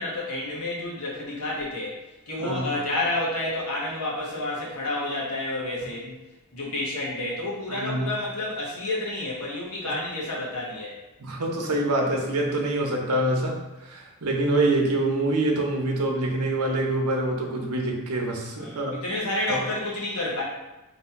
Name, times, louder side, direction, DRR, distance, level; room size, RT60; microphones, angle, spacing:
voice 1, 0.0-2.0 2.3-6.0 6.5-11.0 18.6-20.4, left 2 dB, 80° left, -5 dB, 1.4 m, -30 dB
voice 2, 2.4-2.7 6.0-6.1 7.7-8.1 11.2-13.6 13.8-19.0, right 2 dB, 80° right, 0 dB, 0.8 m, -25 dB
3.2 x 2.7 x 4.5 m, 1.1 s
head